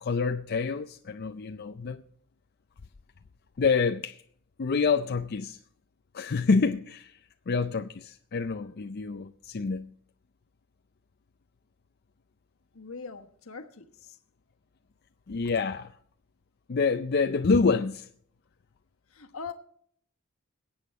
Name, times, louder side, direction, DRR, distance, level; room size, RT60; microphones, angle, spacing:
voice 1, 0.0-2.0 3.6-4.2 4.6-5.6 6.1-7.2 7.5-9.9 15.3-15.9 16.7-18.1, left 4 dB, 45° left, 0.5 m, -27 dB
voice 2, 12.7-14.2 19.1-19.5, left 5 dB, 70° left, 1.3 m, -42 dB
21.5 x 8.8 x 4.2 m
head